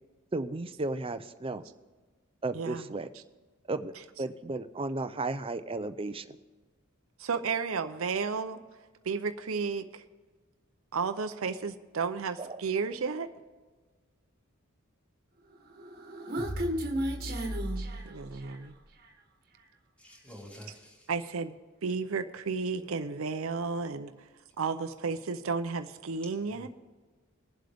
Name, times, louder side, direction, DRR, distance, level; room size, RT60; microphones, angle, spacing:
voice 1, 0.3-1.6 2.4-3.1 3.7-3.9 4.2-6.4 12.4-12.5, right 2 dB, 25° right, 11 dB, 0.6 m, -34 dB
voice 2, 2.5-2.9 3.1-3.2 3.9-4.0 7.2-8.8 9.0-10.0 10.9-13.3 18.0-18.7 21.1-21.5 21.8-26.7, right 5 dB, 70° right, 8 dB, 0.6 m, -33 dB
Human voice, 15.7-18.7, equal, 45° right, 1.4 m, -33 dB
voice 3, 20.0-21.1 26.5-26.7, equal, 5° left, -6 dB, 3.1 m, -48 dB
20.0 x 7.7 x 3.5 m, 1.3 s
head